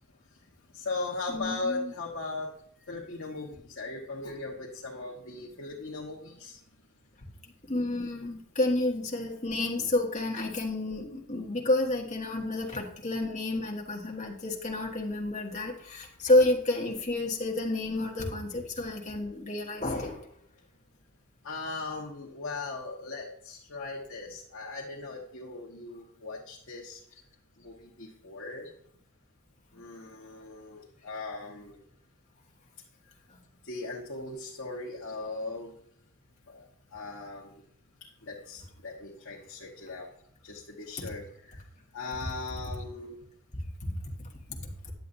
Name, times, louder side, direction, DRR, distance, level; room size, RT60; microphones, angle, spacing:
voice 1, 0.3-2.6 2.9-6.6 21.4-27.2 27.6-28.7 29.7-31.8 33.0-33.1 33.6-35.7 36.5-37.6 38.0-40.1 40.4-43.2, left 3 dB, 60° left, -4 dB, 1.3 m, -39 dB
voice 2, 1.3-1.9 4.2-4.3 7.6-20.3 41.0-41.1 43.5-44.6, left 2 dB, 35° left, 0 dB, 1.5 m, -30 dB
10.5 x 7.6 x 2.7 m, 0.68 s
head